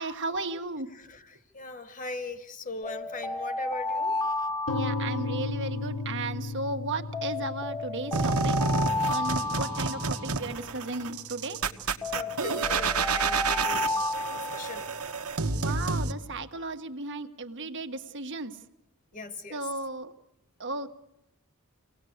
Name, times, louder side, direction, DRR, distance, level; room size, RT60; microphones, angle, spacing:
voice 1, 0.0-0.9 4.7-8.6 9.1-11.6 15.5-18.6 19.5-20.1 20.6-20.9, right 2 dB, 55° right, 1.5 m, -35 dB
voice 2, 0.9-4.2 9.3-9.5 12.1-14.9 15.7-15.8 19.1-19.9, left 3 dB, 40° left, 1.7 m, -40 dB
sound 1, 2.8-6.0 7.1-10.9 12.0-15.2, left 2 dB, 20° left, 1.3 m, -32 dB
sound 2, 4.7-12.6, left 3 dB, 70° left, 2.1 m, -37 dB
sound 3, 8.1-16.1, right 4 dB, 90° right, 1.4 m, -29 dB
26.0 x 18.5 x 8.0 m
head